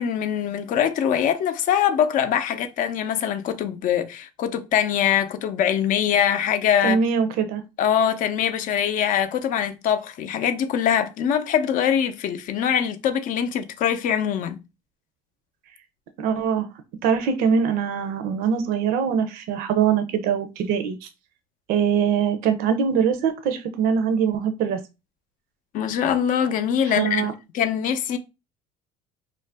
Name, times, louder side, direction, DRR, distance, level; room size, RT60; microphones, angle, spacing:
voice 1, 0.0-7.0 7.8-14.6 25.7-27.3 27.5-28.2, left 9 dB, 55° left, 0.5 m, -23 dB
voice 2, 6.8-7.6 16.2-16.7 17.0-21.1 21.7-24.8 27.0-27.3, right 7 dB, 70° right, 0.5 m, -22 dB
2.4 x 2.0 x 3.3 m
supercardioid pair, 90°, 16 cm